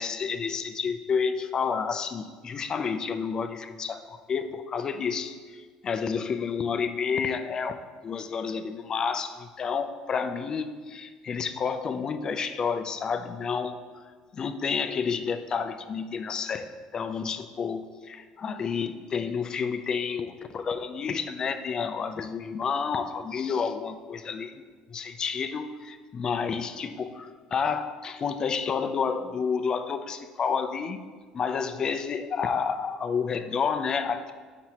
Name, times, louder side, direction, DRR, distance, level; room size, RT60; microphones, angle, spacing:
voice 1, 0.0-14.0 14.3-24.5 24.9-31.0 31.3-34.3, left 6 dB, 35° left, 8 dB, 0.4 m, -30 dB
7.6 x 5.9 x 2.9 m, 1.5 s
cardioid pair, 125°, 2 cm